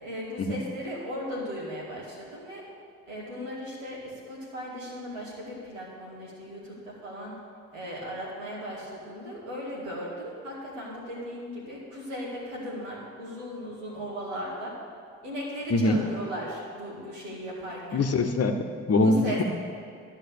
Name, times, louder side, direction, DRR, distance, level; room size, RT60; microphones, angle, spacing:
voice 1, 0.0-2.7 3.1-7.4 7.7-14.7 15.2-18.0 19.0-19.4, equal, 90° right, -5 dB, 2.0 m, -37 dB
voice 2, 15.7-16.0 17.9-19.4, left 2 dB, 40° left, 5 dB, 1.0 m, -23 dB
11.5 x 5.6 x 6.9 m, 2.3 s
hypercardioid pair, 40°, 37 cm